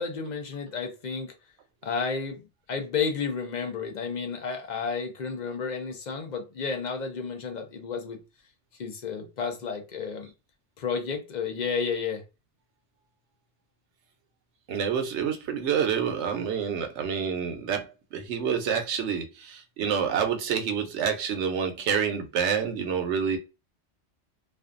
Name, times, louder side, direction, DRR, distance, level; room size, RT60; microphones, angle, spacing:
voice 1, 0.0-1.3 1.8-2.4 2.7-8.2 8.8-10.3 10.8-12.2, left 5 dB, 50° left, 0.6 m, -31 dB
voice 2, 14.7-23.4, right 7 dB, 75° right, 0.9 m, -28 dB
2.5 x 2.3 x 2.4 m
omnidirectional pair, 1.2 m